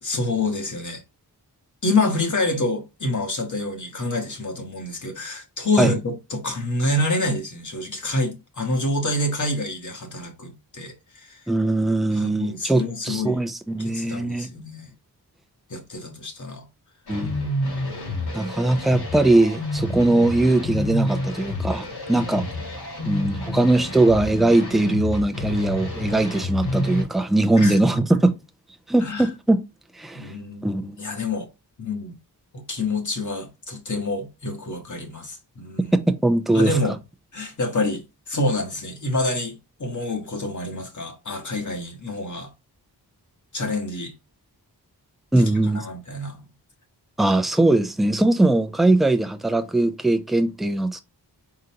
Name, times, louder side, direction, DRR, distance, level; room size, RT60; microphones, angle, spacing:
voice 1, 0.0-1.0 1.8-11.4 12.1-13.4 13.8-14.9 15.7-16.6 17.9-18.3 22.1-22.2 27.6-28.0 29.0-29.2 30.1-31.5 31.8-32.2 32.5-35.9 36.5-36.9 37.3-42.5 43.5-44.1 45.4-45.5 45.7-46.4, left 2 dB, 45° left, 1.2 m, -27 dB
voice 2, 11.5-14.5 17.1-17.4 18.3-22.5 23.0-28.3 28.9-29.6 30.0-30.3 30.6-31.0 36.2-36.7 45.3-45.9 47.2-51.0, right 2 dB, ahead, 0.5 m, -20 dB
sound 1, 17.1-27.0, left 1 dB, 65° left, 2.1 m, -29 dB
3.9 x 3.8 x 2.8 m
cardioid pair, 60°, 40 cm